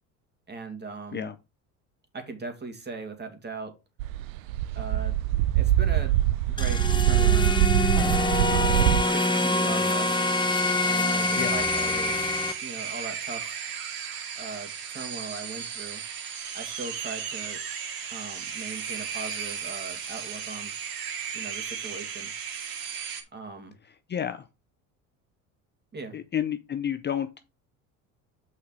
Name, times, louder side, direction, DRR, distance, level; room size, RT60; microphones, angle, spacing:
voice 1, 0.5-1.3 2.1-3.7 4.7-5.2 5.5-6.1 6.5-7.7 8.5-10.3 10.8-12.3 12.6-13.6 14.4-16.0 16.5-17.6 18.1-20.7 21.3-22.3 23.3-23.7 25.9-26.2, right 3 dB, 25° right, 6 dB, 2.4 m, -39 dB
sound 1, 4.0-9.0, right 14 dB, 75° right, 0.7 m, -23 dB
sound 2, 6.6-12.5, left 2 dB, 10° left, 1.3 m, -25 dB
sound 3, 9.0-23.2, right 7 dB, 60° right, 2.2 m, -35 dB
voice 2, 24.1-24.5 26.1-27.4, left 9 dB, 25° left, 10 dB, 0.6 m, -30 dB
6.4 x 5.6 x 4.7 m, 0.27 s
hypercardioid pair, 80°, 40 cm